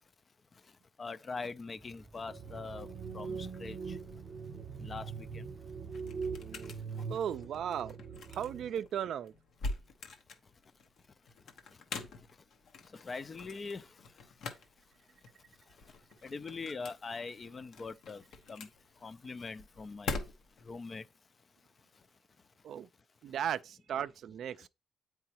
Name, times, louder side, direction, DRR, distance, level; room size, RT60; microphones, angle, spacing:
voice 1, 1.0-2.9 3.1-3.8 4.8-5.1 13.0-13.8 16.2-18.2 18.5-18.7 19.0-20.1 20.7-21.0, left 4 dB, 35° left, 0.3 m, -42 dB
sound 1, 1.8-6.9, right 1 dB, 20° right, 0.6 m, -55 dB
sound 2, 2.3-8.7, right 5 dB, 50° right, 0.7 m, -42 dB
sound 3, 5.3-20.7, left 3 dB, 70° left, 0.9 m, -45 dB
voice 2, 7.1-8.0 8.3-9.3 22.6-22.9 23.2-24.7, right 9 dB, 70° right, 0.3 m, -36 dB
7.8 x 4.7 x 2.9 m
cardioid pair, 90°, 0 cm